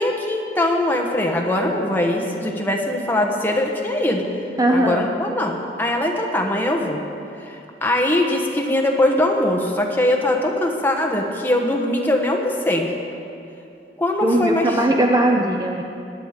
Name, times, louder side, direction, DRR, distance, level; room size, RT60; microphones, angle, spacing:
voice 1, 0.0-4.2 4.7-7.0 7.4-12.9 14.0-14.8, left 1 dB, 10° left, 1 dB, 1.2 m, -21 dB
voice 2, 4.6-5.1 14.2-15.8, right 1 dB, 20° right, 2 dB, 0.6 m, -19 dB
19.0 x 9.3 x 5.1 m, 2.7 s
head